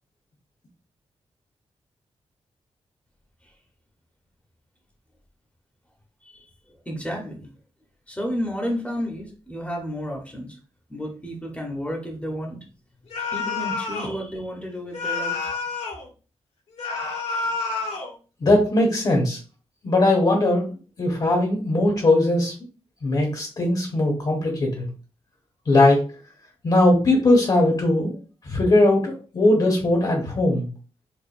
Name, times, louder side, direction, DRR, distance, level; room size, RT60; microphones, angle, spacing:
voice 1, 6.9-7.5 8.1-10.6 10.9-12.6 13.3-15.5, equal, 10° left, 1 dB, 0.9 m, -31 dB
sound 1, 13.1-14.2 14.9-16.1 16.8-18.1, left 4 dB, 70° left, 1.3 m, -28 dB
voice 2, 18.4-19.4 19.8-20.6 21.0-22.5 23.0-24.9 25.7-26.0 26.6-28.2 28.4-30.7, left 2 dB, 45° left, 0 dB, 1.1 m, -19 dB
4.5 x 2.5 x 2.5 m, 0.35 s
wide cardioid pair, 105°, 11 cm